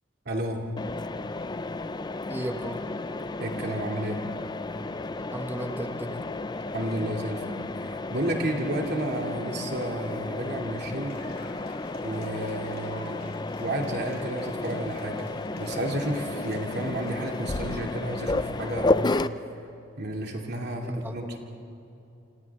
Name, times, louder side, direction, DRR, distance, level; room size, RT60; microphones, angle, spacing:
voice 1, 0.3-0.6 3.4-4.2 6.7-11.2 12.0-19.1 20.0-21.4, right 1 dB, 60° right, 1 dB, 2.6 m, -32 dB
Mechanisms, 0.8-19.3, left 2 dB, 25° left, 0.5 m, -32 dB
voice 2, 2.3-2.8 5.3-6.3 20.8-21.4, equal, 10° right, 4 dB, 1.4 m, -35 dB
Cheering / Applause, 10.6-18.1, left 2 dB, 55° left, 3.5 m, -49 dB
28.5 x 27.5 x 3.6 m, 2.8 s
head